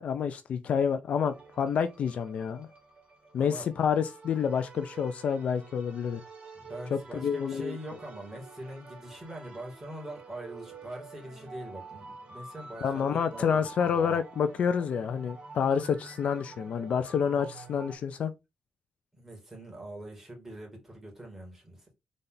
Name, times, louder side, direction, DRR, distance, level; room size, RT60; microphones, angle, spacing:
voice 1, 0.0-2.7 3.3-6.2 6.9-7.8 12.8-18.3, left 7 dB, 60° left, 0.5 m, -28 dB
sound 1, 1.2-18.0, right 3 dB, 55° right, 2.3 m, -48 dB
voice 2, 3.4-3.7 6.5-14.2 16.9-17.1 19.1-21.9, right 1 dB, 10° right, 2.4 m, -43 dB
4.2 x 3.3 x 3.9 m
wide cardioid pair, 155°, 3 cm